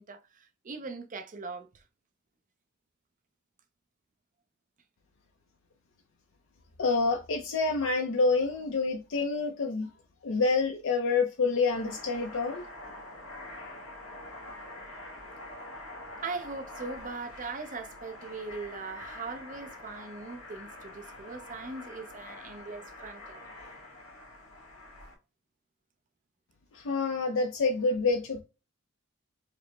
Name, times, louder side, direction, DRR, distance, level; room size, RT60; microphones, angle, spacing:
voice 1, 0.0-1.8 16.2-23.4, right 4 dB, 40° right, 0.6 m, -40 dB
voice 2, 6.8-9.9 10.2-12.6 26.7-28.4, left 4 dB, 60° left, 0.5 m, -27 dB
sound 1, 11.5-25.1, left 1 dB, 85° left, 1.3 m, -46 dB
4.9 x 2.1 x 3.2 m
head